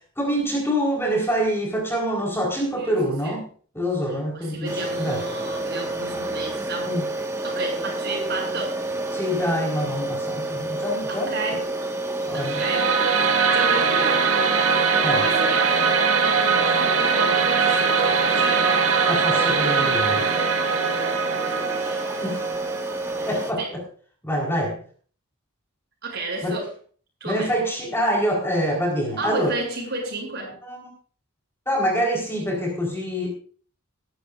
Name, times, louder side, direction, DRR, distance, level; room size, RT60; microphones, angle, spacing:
voice 1, 0.2-3.5 3.7-5.2 6.8-7.1 9.1-11.4 12.2-12.6 15.0-15.2 19.1-20.3 22.2-22.4 23.3-23.8 24.2-24.8 26.4-26.6 27.2-29.6 30.7-30.9 31.7-33.3, equal, 10° left, 0 dB, 4.3 m, -25 dB
voice 2, 2.8-3.4 4.1-7.0 7.4-8.8 11.1-11.7 12.3-14.3 15.1-18.8 20.8-22.1 23.2-23.8 26.0-26.7 27.2-27.5 29.2-30.6, right 2 dB, 50° right, 1 dB, 7.1 m, -33 dB
sound 1, 4.6-23.5, right 2 dB, 15° right, 1.6 m, -29 dB
sound 2, 12.4-23.4, right 5 dB, 80° right, 1.9 m, -22 dB
21.0 x 11.5 x 2.6 m, 0.43 s
head